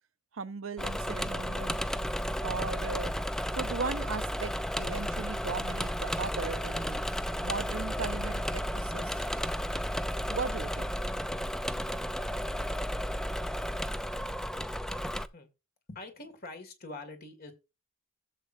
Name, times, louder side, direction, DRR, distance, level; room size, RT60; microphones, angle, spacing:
voice 1, 0.3-1.8 2.4-3.1 3.5-7.0 7.4-9.2 10.3-10.9, right 4 dB, 75° right, 0.7 m, -37 dB
Engine / Mechanisms, 0.8-15.3, equal, 5° left, 0.4 m, -33 dB
voice 2, 15.9-17.5, left 2 dB, 50° left, 2.1 m, -44 dB
15.5 x 7.6 x 2.6 m
head